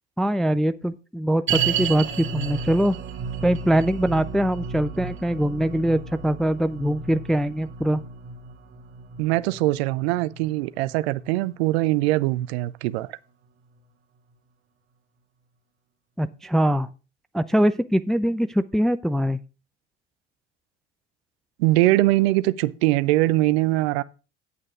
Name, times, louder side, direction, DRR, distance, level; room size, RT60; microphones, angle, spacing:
voice 1, 0.2-3.0 3.4-8.0 16.2-16.9 17.3-19.4, equal, ahead, 0.4 m, -22 dB
sound 1, 1.5-12.8 13.0-13.1 13.8-13.9, right 7 dB, 35° right, 1.9 m, -33 dB
voice 2, 9.2-13.2 21.6-24.0, right 18 dB, 60° right, 0.6 m, -22 dB
8.6 x 8.4 x 4.9 m
figure-of-eight pair, 70°, 35 cm